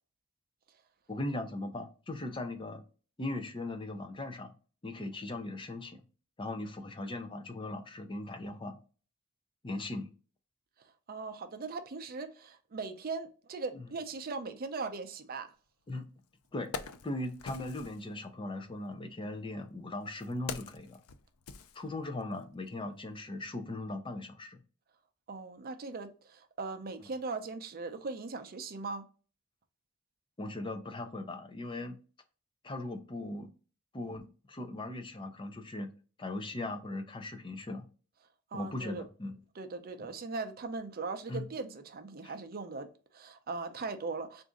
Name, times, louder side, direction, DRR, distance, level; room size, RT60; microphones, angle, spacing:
voice 1, 1.1-2.8 3.2-4.5 4.8-6.0 6.4-8.8 9.6-10.1 13.7-13.9 15.9-16.0 16.5-16.7 17.0-21.0 21.7-24.6 30.4-32.0 32.6-33.5 33.9-35.9 36.2-37.9 38.5-39.3 40.0-40.1 41.3-41.5 42.2-42.3, left 2 dB, 25° left, 0.5 m, -39 dB
voice 2, 11.1-15.5 25.3-29.1 38.5-39.0 39.5-44.4, right 4 dB, 45° right, 0.5 m, -39 dB
Wood, 15.9-16.0 16.4-18.1 19.0-22.4 22.7-22.8, left 5 dB, 85° left, 0.4 m, -44 dB
3.9 x 2.6 x 3.6 m
head